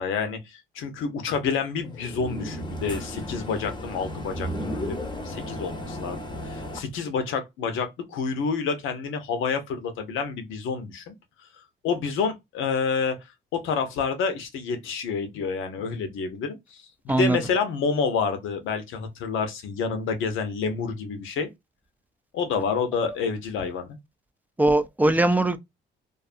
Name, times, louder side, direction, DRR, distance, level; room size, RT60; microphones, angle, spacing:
voice 1, 0.0-5.0 5.2-11.1 11.8-13.2 13.5-21.5 22.3-23.9, left 5 dB, 85° left, 0.8 m, -28 dB
sound 1, 1.8-6.8, equal, 20° left, 0.7 m, -34 dB
voice 2, 17.1-17.4 23.0-23.2 24.6-25.6, right 2 dB, 10° right, 0.4 m, -21 dB
2.6 x 2.3 x 2.5 m
cardioid pair, 90°, 20 cm